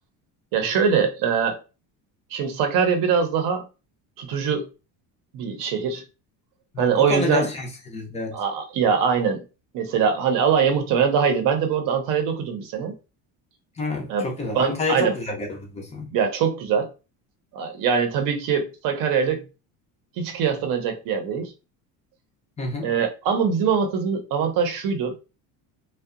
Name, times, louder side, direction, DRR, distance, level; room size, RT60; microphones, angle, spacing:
voice 1, 0.5-1.6 2.3-3.6 4.2-4.7 5.3-6.0 6.8-7.5 8.3-9.4 9.7-12.9 14.1-14.3 14.5-15.1 16.1-16.9 17.5-19.4 20.2-21.5 22.8-25.2, right 6 dB, 55° right, 0.7 m, -22 dB
voice 2, 6.7-8.4 13.8-16.1 22.6-22.9, left 3 dB, 15° left, 0.5 m, -28 dB
2.7 x 2.2 x 2.4 m
cardioid pair, 150°, 40 cm